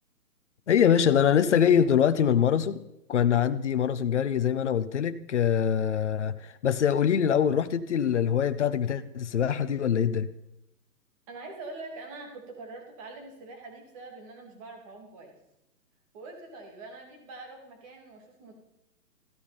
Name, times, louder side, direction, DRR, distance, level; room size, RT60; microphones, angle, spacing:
voice 1, 0.7-2.8 3.1-6.3 6.6-10.3, left 8 dB, 45° left, 11 dB, 0.9 m, -24 dB
voice 2, 11.3-15.3 16.1-18.5, right 3 dB, 20° right, 2 dB, 2.7 m, -44 dB
14.5 x 13.5 x 5.2 m, 0.86 s
hypercardioid pair, 160°, 49 cm